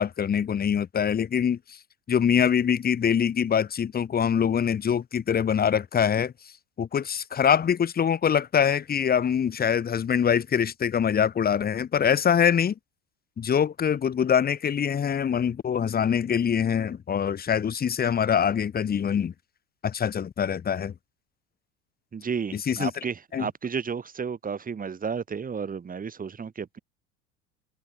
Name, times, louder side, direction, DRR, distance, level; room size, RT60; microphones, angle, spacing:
voice 1, 0.0-1.8 2.1-6.3 6.8-12.7 13.4-19.3 19.8-20.9 22.5-22.9 23.3-23.5, left 8 dB, 25° left, 1.8 m, -24 dB
voice 2, 22.1-26.8, right 6 dB, 20° right, 3.2 m, -32 dB
figure-of-eight pair, 75°, 39 cm